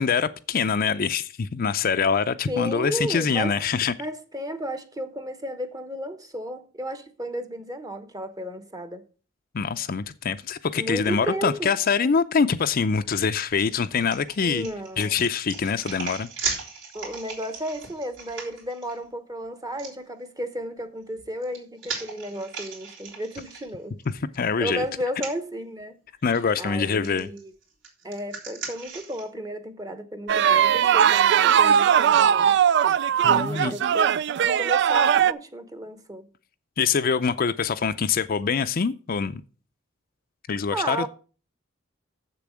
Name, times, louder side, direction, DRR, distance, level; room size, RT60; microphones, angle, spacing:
voice 1, 0.0-3.9 9.5-14.7 15.0-16.3 24.4-24.8 26.2-27.3 33.2-33.8 36.8-39.4 40.5-41.1, left 6 dB, 50° left, 0.5 m, -24 dB
voice 2, 2.5-3.6 4.0-9.0 10.7-11.7 14.4-15.2 16.9-24.0 24.4-26.0 26.6-27.5 28.0-32.6 33.2-34.1 34.4-36.3 40.7-41.1, equal, 20° right, 1.0 m, -33 dB
sound 1, 13.4-19.0 19.8-19.9 21.1-24.1 24.5-24.6 25.1-25.3 26.3-26.6 27.0-29.3, right 5 dB, 80° right, 3.5 m, -37 dB
sound 2, 30.3-35.3, right 8 dB, 60° right, 0.3 m, -19 dB
7.4 x 6.9 x 6.2 m
head